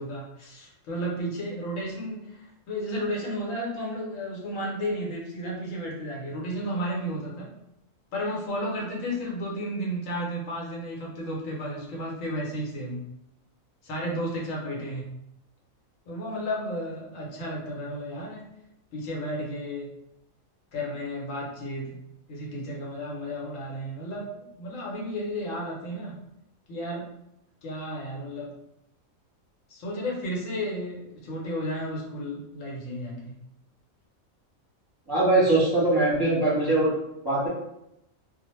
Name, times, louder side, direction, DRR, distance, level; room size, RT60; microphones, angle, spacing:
voice 1, 0.0-7.5 8.1-13.1 13.8-15.1 16.1-18.5 18.9-19.9 20.7-22.0 22.3-26.2 26.7-27.1 27.6-28.5 29.7-33.4, equal, 75° left, -3 dB, 1.0 m, -33 dB
voice 2, 35.1-36.9 37.2-37.5, right 2 dB, 20° right, -9 dB, 0.9 m, -22 dB
2.2 x 2.1 x 3.0 m, 0.82 s
omnidirectional pair, 1.4 m